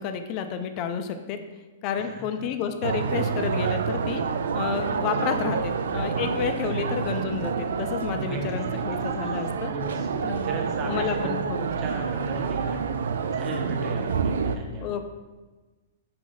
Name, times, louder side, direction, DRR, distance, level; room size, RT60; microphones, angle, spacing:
voice 1, 0.0-1.4 1.8-4.2 4.5-9.7 10.2-10.4 10.8-11.9 14.8-15.1, left 7 dB, 25° left, 8 dB, 0.4 m, -30 dB
sound 1, 2.8-14.6, right 5 dB, 80° right, 0.4 m, -28 dB
voice 2, 8.2-8.8 9.7-12.8 13.3-14.9, right 2 dB, 20° right, 0 dB, 0.9 m, -36 dB
6.2 x 4.1 x 3.8 m, 1.2 s
hypercardioid pair, 175°, 0 cm